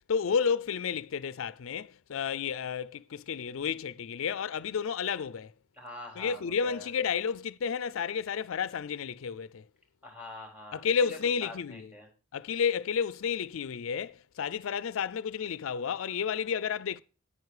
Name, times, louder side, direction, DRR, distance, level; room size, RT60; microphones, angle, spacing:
voice 1, 0.1-5.5 6.2-9.6 10.7-11.9 12.3-17.0, left 6 dB, 70° left, 0.4 m, -31 dB
voice 2, 5.7-6.9 10.0-12.1, left 2 dB, 5° right, 3.9 m, -45 dB
10.0 x 9.4 x 4.8 m
head